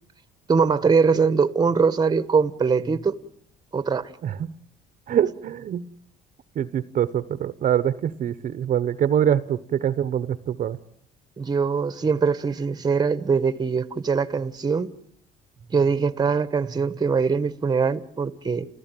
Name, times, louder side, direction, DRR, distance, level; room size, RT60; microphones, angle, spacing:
voice 1, 0.5-3.2 3.7-4.1 11.4-14.9 15.7-18.7, right 5 dB, 25° right, 1.2 m, -22 dB
voice 2, 4.2-4.5 5.1-5.9 6.5-10.8, right 10 dB, 50° right, 0.9 m, -24 dB
29.0 x 15.0 x 9.1 m
cardioid pair, 110°, 17 cm